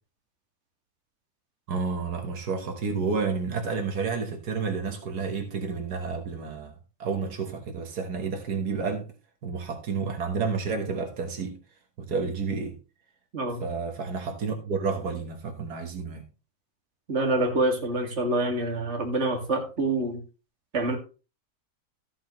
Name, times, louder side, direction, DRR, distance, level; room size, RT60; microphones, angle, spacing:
voice 1, 1.7-9.1 9.4-11.6 12.0-12.8 13.6-16.3, right 5 dB, 85° right, 1.9 m, -30 dB
voice 2, 17.1-20.2 20.7-21.0, right 2 dB, 45° right, 2.4 m, -26 dB
14.0 x 7.7 x 3.1 m
omnidirectional pair, 1.6 m